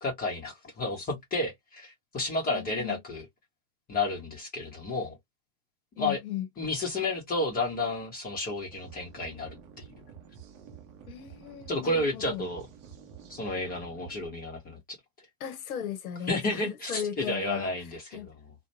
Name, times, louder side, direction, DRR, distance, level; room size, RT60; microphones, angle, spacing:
voice 1, 0.0-3.3 3.9-5.2 6.0-6.2 6.6-9.9 11.7-12.7 13.3-14.8 16.3-18.5, left 2 dB, 20° left, 0.8 m, -31 dB
voice 2, 2.4-3.0 6.0-6.5 11.1-12.5 15.4-17.7 18.1-18.3, left 10 dB, 60° left, 0.8 m, -36 dB
sound 1, 8.7-14.3, right 7 dB, 30° right, 0.7 m, -50 dB
2.4 x 2.2 x 2.8 m
hypercardioid pair, 105°, 47 cm